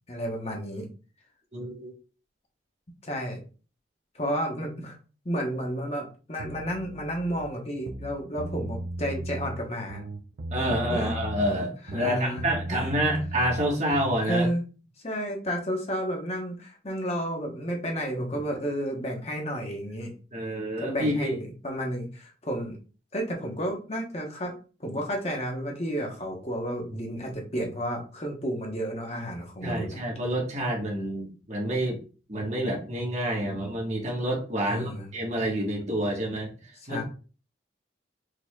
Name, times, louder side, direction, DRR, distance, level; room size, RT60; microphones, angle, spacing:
voice 1, 0.1-0.9 3.0-3.4 4.1-5.0 5.2-10.0 10.9-11.1 11.9-12.5 12.7-12.8 14.3-14.6 15.0-20.1 20.8-22.8 23.1-30.0 34.7-35.1 36.8-37.0, equal, 35° left, 1 dB, 1.0 m, -31 dB
voice 2, 1.5-1.9 10.5-14.5 20.3-21.4 29.6-32.0 32.3-37.0, equal, 40° right, -1 dB, 1.3 m, -28 dB
sound 1, 6.4-7.4 7.8-9.6 9.9-11.6 11.9-14.3, right 1 dB, 80° right, 0.6 m, -36 dB
4.8 x 4.2 x 2.3 m, 0.36 s
head